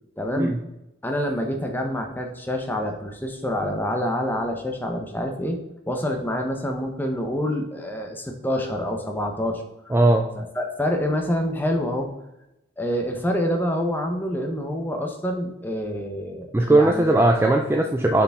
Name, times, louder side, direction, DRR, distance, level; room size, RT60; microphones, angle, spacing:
voice 1, 0.2-0.6 1.0-5.6 5.9-9.9 10.4-12.1 12.8-17.2, equal, 10° left, 3 dB, 0.8 m, -27 dB
voice 2, 9.9-10.3 16.5-18.2, right 2 dB, 15° right, 3 dB, 0.3 m, -18 dB
6.9 x 4.9 x 3.6 m, 0.90 s
head